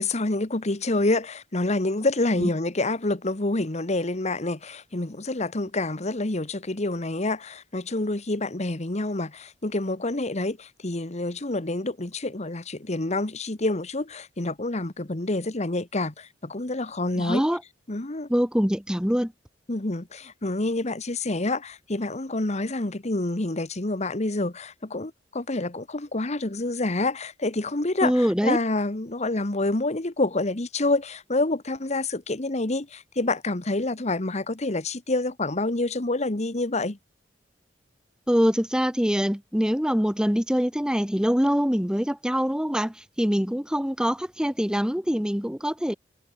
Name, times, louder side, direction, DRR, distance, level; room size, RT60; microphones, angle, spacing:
voice 1, 0.0-17.4 17.9-18.3 19.7-37.0, left 2 dB, 40° left, 1.4 m, -27 dB
voice 2, 17.2-17.6 18.3-19.3 28.0-28.6 38.3-45.9, equal, 5° right, 1.3 m, -24 dB
head